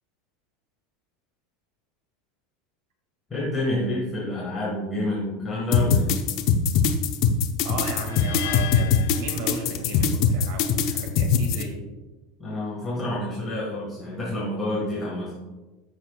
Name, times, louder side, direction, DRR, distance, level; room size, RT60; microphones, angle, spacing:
voice 1, 3.3-6.1 12.4-15.3, left 1 dB, 15° left, -7 dB, 1.8 m, -28 dB
sound 1, 5.7-11.6, left 7 dB, 45° left, 0.7 m, -21 dB
voice 2, 7.6-11.8, right 3 dB, 70° right, 3 dB, 2.2 m, -35 dB
sound 2, 8.0-10.2, left 11 dB, 90° left, 0.7 m, -36 dB
14.5 x 6.1 x 2.4 m, 1.1 s
supercardioid pair, 170°, 0 cm